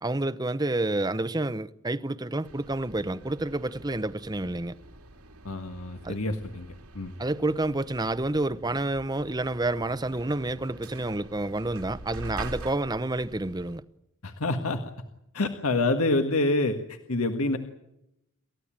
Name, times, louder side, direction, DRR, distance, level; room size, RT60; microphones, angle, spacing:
voice 1, 0.0-4.8 6.0-6.2 7.2-13.8, right 2 dB, 15° right, 0.8 m, -29 dB
sound 1, 2.4-13.8, right 2 dB, 85° right, 3.2 m, -45 dB
voice 2, 5.4-7.1 14.2-14.8 15.3-17.6, left 2 dB, 75° left, 1.7 m, -27 dB
28.5 x 15.0 x 8.8 m
head